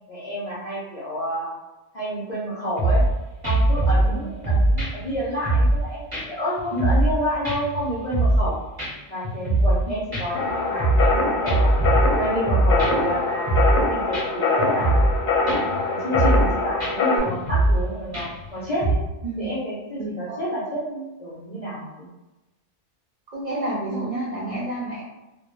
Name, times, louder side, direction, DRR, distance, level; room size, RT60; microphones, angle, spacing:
voice 1, 0.1-1.5 1.9-3.0 3.4-8.5 9.1-11.8 12.2-14.9 15.4-19.0 19.4-21.9, equal, 50° left, -9 dB, 0.4 m, -29 dB
sound 1, 2.8-3.1 3.4-4.1 4.4-5.8 6.1-6.2 6.6-7.2 7.4-8.5 8.8-8.9 9.2-9.8 10.1-11.2 11.5-13.1 13.5-13.8 14.1-14.2 14.6-15.2 15.5-15.8 16.1-16.5 16.8-16.9 17.3-17.8 18.1-18.5 18.8-19.0, right 2 dB, 20° right, 0.7 m, -21 dB
sound 2, 10.3-17.2, left 3 dB, 85° left, 1.0 m, -23 dB
voice 2, 20.0-20.4 23.3-25.0, right 1 dB, 65° right, -7 dB, 0.4 m, -29 dB
2.1 x 2.0 x 3.0 m, 1.0 s
omnidirectional pair, 1.4 m